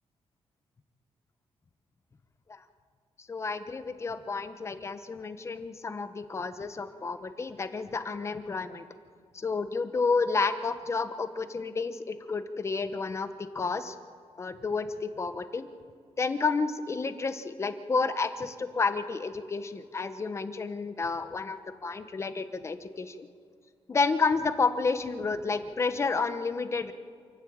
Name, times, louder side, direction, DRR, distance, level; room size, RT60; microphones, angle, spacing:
voice 1, 3.3-8.8 9.3-14.0 14.4-15.7 16.2-23.3 23.9-26.9, left 4 dB, 25° left, 10 dB, 1.1 m, -30 dB
27.5 x 12.5 x 8.8 m, 2.3 s
wide cardioid pair, 160°, 11 cm